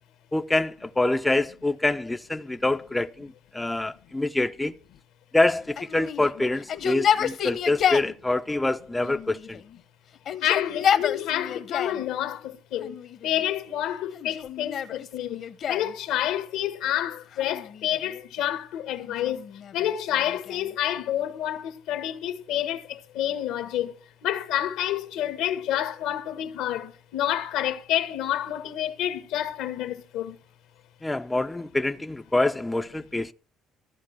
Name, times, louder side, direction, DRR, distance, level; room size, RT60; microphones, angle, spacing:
voice 1, 0.3-4.7 5.3-9.6 31.0-33.3, left 2 dB, 10° left, 0.6 m, -26 dB
Yell, 5.8-8.1 9.0-9.8 10.2-12.0 12.8-13.4 14.1-15.9 17.3-18.2 19.0-20.7, left 9 dB, 55° left, 1.1 m, -29 dB
voice 2, 10.4-12.4 12.7-12.9 13.2-15.4 15.7-19.4 19.7-22.8 23.1-23.9 24.2-30.3, left 11 dB, 85° left, 1.5 m, -28 dB
14.0 x 5.0 x 8.8 m
cardioid pair, 100°, 0 cm